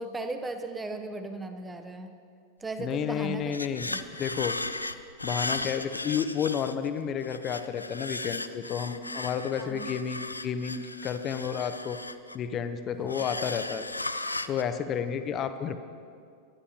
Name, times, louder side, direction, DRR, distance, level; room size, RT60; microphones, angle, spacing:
voice 1, 0.0-2.1 2.6-3.5 3.9-4.0 9.6-9.9 13.0-13.3, right 2 dB, 10° right, 7 dB, 0.9 m, -37 dB
voice 2, 2.8-3.9 4.2-4.6 5.2-12.0 12.3-13.8 14.5-15.8, left 8 dB, 30° left, 9 dB, 0.8 m, -31 dB
sound 1, 2.9-3.0 3.2-6.9 7.2-12.6 13.1-14.6, left 2 dB, 85° left, 0.4 m, -36 dB
22.0 x 11.0 x 2.9 m, 2.3 s
figure-of-eight pair, 90°, 0 cm